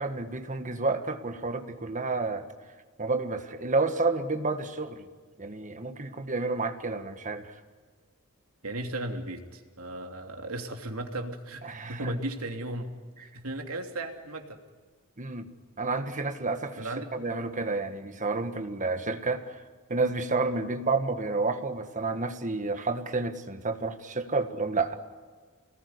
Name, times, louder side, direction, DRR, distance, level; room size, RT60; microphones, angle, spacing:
voice 1, 0.0-2.5 3.0-5.1 5.4-7.5 11.6-12.1 15.2-15.5 15.8-16.9 17.1-19.6 19.9-25.0, right 3 dB, 35° right, 8 dB, 1.7 m, -30 dB
voice 2, 8.6-12.9 13.2-14.6 16.8-17.1 17.4-17.5, right 1 dB, 75° right, 4 dB, 3.0 m, -36 dB
28.0 x 19.5 x 9.8 m, 1.5 s
head